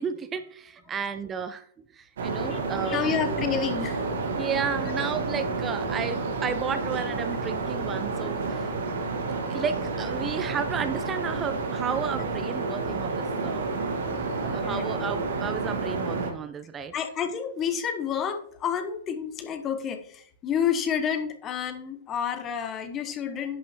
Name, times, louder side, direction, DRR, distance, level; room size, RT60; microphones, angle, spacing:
voice 1, 0.0-1.6 1.9-3.0 3.3-3.4 4.4-8.7 9.5-13.7 14.4-16.9, right 6 dB, 20° right, 10 dB, 0.5 m, -33 dB
sound 1, 2.2-16.3, right 3 dB, 65° right, 1.6 m, -30 dB
voice 2, 2.8-4.0 14.6-14.9 16.9-23.6, left 8 dB, 30° left, 9 dB, 1.1 m, -29 dB
11.0 x 5.8 x 3.0 m, 0.62 s
hypercardioid pair, 110°, 0 cm